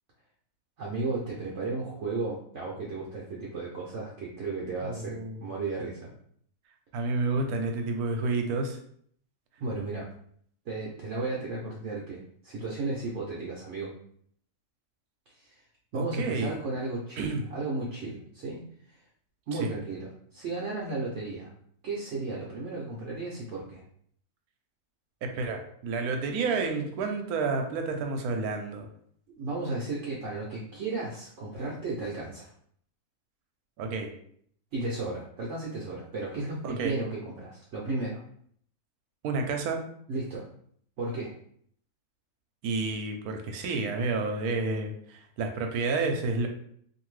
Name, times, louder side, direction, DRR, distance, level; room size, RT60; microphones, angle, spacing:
voice 1, 0.8-6.1 9.6-10.1 10.7-13.9 15.4-15.6 15.9-18.6 19.5-21.5 21.8-23.8 29.4-32.5 34.7-38.2 40.1-40.5 41.0-41.3, right 3 dB, 60° right, -4 dB, 0.8 m, -34 dB
voice 2, 4.8-5.4 6.9-8.8 15.9-16.5 17.2-17.5 19.5-19.7 25.2-28.9 33.8-34.1 36.6-37.0 39.2-39.8 42.6-46.5, right 3 dB, 85° right, 4 dB, 1.1 m, -30 dB
2.6 x 2.6 x 3.1 m, 0.64 s
omnidirectional pair, 1.5 m